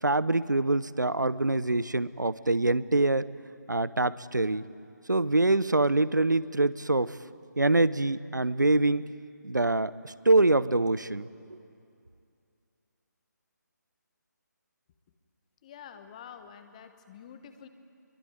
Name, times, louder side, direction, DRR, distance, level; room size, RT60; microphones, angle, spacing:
voice 1, 0.0-3.3 3.7-4.6 5.1-7.2 7.6-9.0 9.4-11.3, right 2 dB, 75° right, 18 dB, 0.9 m, -25 dB
voice 2, 15.6-17.7, left 8 dB, 20° left, 9 dB, 1.2 m, -48 dB
25.5 x 22.5 x 9.4 m, 2.5 s
figure-of-eight pair, 150°, 10 cm